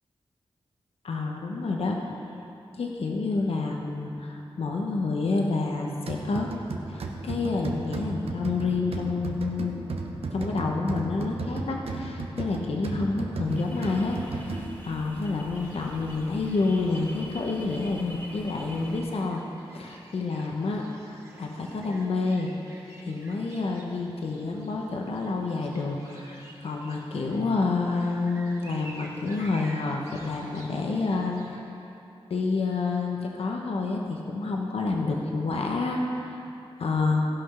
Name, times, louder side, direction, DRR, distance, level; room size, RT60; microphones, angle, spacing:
voice 1, 1.0-2.1 2.7-6.5 6.9-9.8 10.3-19.4 19.7-22.5 23.0-31.7 32.3-36.4 36.8-37.3, left 3 dB, 80° left, 1 dB, 1.0 m, -28 dB
sound 1, 6.1-15.0, right 3 dB, 90° right, 0.9 m, -35 dB
sound 2, 13.5-19.0, equal, 20° left, 2.0 m, -45 dB
sound 3, 15.5-31.6, right 1 dB, 30° right, 1.9 m, -51 dB
15.5 x 5.9 x 5.6 m, 2.8 s
wide cardioid pair, 110°, 10 cm